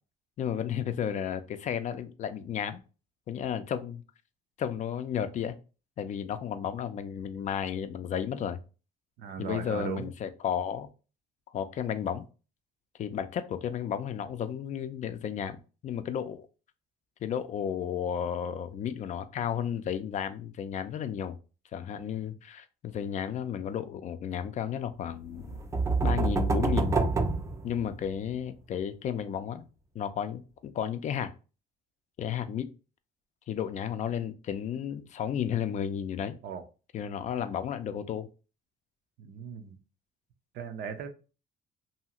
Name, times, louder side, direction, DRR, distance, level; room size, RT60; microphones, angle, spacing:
voice 1, 0.4-2.8 3.3-4.0 4.6-5.6 6.0-8.6 9.4-10.9 11.5-12.3 13.0-16.5 17.2-21.4 21.7-25.6 26.0-27.0 27.6-29.7 29.9-31.3 32.2-32.7 33.5-36.4 36.9-38.3, left 8 dB, 45° left, 0.4 m, -33 dB
voice 2, 9.2-10.1 36.4-36.6 39.2-39.8 40.5-41.1, right 7 dB, 70° right, 0.6 m, -37 dB
sound 1, 25.4-28.3, right 3 dB, 15° right, 0.4 m, -27 dB
2.7 x 2.4 x 2.8 m
cardioid pair, 110°, 17 cm